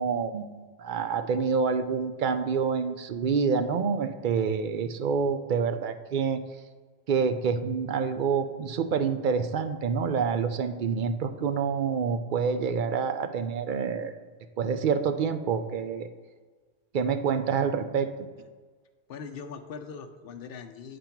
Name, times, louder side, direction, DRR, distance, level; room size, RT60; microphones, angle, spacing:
voice 1, 0.0-6.4 7.1-14.1 14.6-16.1 16.9-18.1, right 6 dB, 55° right, 9 dB, 0.6 m, -27 dB
voice 2, 19.1-21.0, left 5 dB, 65° left, 7 dB, 0.8 m, -41 dB
9.2 x 3.4 x 5.8 m, 1.5 s
omnidirectional pair, 1.1 m